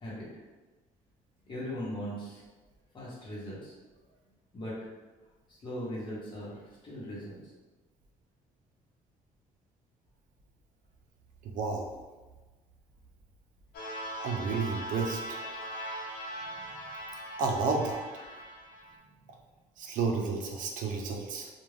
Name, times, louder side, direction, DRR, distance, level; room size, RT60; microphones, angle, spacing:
voice 1, 1.4-2.4 2.9-3.7 4.5-4.8 5.6-7.4 16.4-16.9, equal, 35° left, -6 dB, 0.9 m, -39 dB
voice 2, 11.4-11.9 14.2-15.4 17.4-18.3 19.8-21.5, right 4 dB, 65° right, 1 dB, 0.4 m, -31 dB
sound 1, 13.7-19.0, right 1 dB, 85° left, 0.6 m, -40 dB
2.4 x 2.2 x 3.2 m, 1.2 s
cardioid pair, 145°, 14 cm